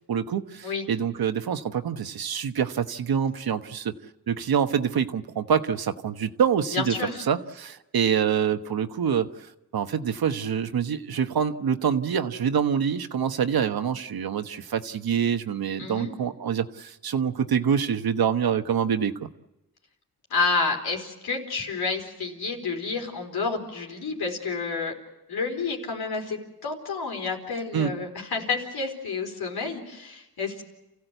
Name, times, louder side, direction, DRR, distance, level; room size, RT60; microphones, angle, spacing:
voice 1, 0.1-3.9 4.3-19.3 27.7-27.9, right 7 dB, 75° right, 9 dB, 1.2 m, -26 dB
voice 2, 6.7-7.2 15.8-16.1 20.3-24.9 25.3-30.6, left 4 dB, 90° left, 2 dB, 4.4 m, -29 dB
29.0 x 15.5 x 8.1 m, 0.97 s
cardioid pair, 85°, 37 cm